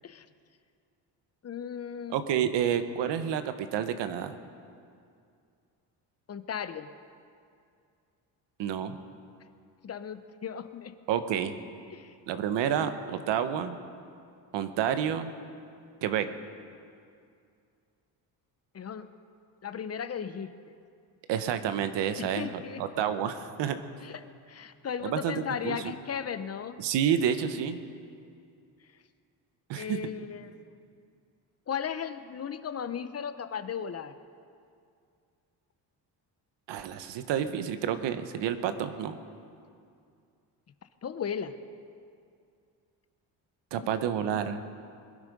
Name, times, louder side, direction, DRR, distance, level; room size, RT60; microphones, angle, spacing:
voice 1, 1.4-2.2 6.3-6.9 9.8-10.9 11.9-12.1 18.7-19.1 19.6-20.7 22.2-22.8 24.0-26.8 29.8-30.5 31.7-34.2 41.0-41.5 43.8-43.9, left 7 dB, 35° left, 11 dB, 0.8 m, -36 dB
voice 2, 2.1-4.4 8.6-9.0 11.1-11.5 12.3-13.8 14.5-15.3 16.0-16.3 21.3-23.8 25.0-25.3 25.6-25.9 26.8-27.8 29.7-30.0 36.7-39.2 43.7-44.6, right 9 dB, 75° right, 10 dB, 1.2 m, -29 dB
21.5 x 12.0 x 5.3 m, 2.4 s
cardioid pair, 105°, 43 cm